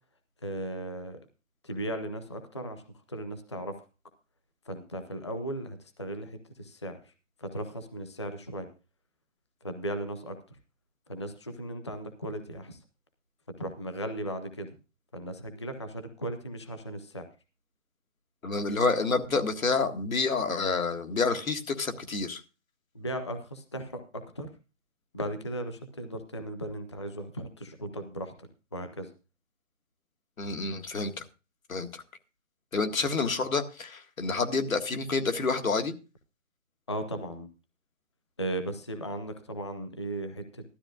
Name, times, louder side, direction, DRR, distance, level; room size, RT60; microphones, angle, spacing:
voice 1, 0.4-1.2 1.6-3.7 4.6-7.1 7.4-8.7 9.6-10.6 11.1-12.8 13.6-14.7 15.1-17.3 22.9-24.5 25.1-29.1 36.9-37.5 38.4-40.6, right 1 dB, 20° left, 8 dB, 0.6 m, -37 dB
voice 2, 18.4-22.4 30.4-31.2 31.7-32.0 32.7-35.9, left 4 dB, 85° left, 6 dB, 1.9 m, -28 dB
15.5 x 12.5 x 2.4 m, 0.31 s
hypercardioid pair, 170°, 40 cm